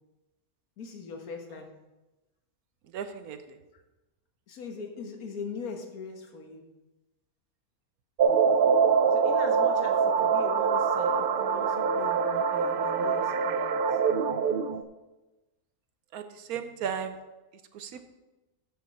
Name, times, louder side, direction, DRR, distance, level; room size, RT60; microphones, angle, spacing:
voice 1, 0.8-1.7 3.7-3.8 4.5-6.7 9.1-14.0, left 4 dB, 80° left, 3 dB, 1.7 m, -41 dB
voice 2, 2.9-3.6 16.1-17.2 17.7-18.0, right 8 dB, 85° right, 10 dB, 1.2 m, -35 dB
sound 1, 8.2-14.8, right 6 dB, 70° right, 0.5 m, -24 dB
13.0 x 6.0 x 4.2 m, 1.1 s
omnidirectional pair, 1.5 m